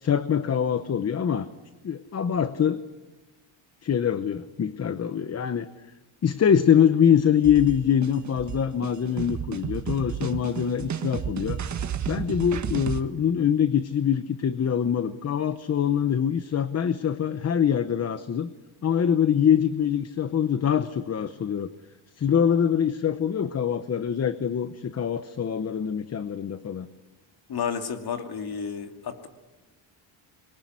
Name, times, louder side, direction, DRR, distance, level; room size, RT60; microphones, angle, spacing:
voice 1, 0.0-1.5 1.8-2.8 3.8-5.7 6.2-11.6 12.1-18.5 18.8-21.7 22.2-26.9, left 8 dB, 30° left, 12 dB, 0.9 m, -24 dB
sound 1, 7.4-13.0, right 8 dB, 35° right, 1.6 m, -32 dB
voice 2, 27.5-29.3, left 7 dB, 50° left, 6 dB, 2.7 m, -31 dB
26.0 x 22.5 x 9.6 m, 1.1 s
cardioid pair, 160°, 49 cm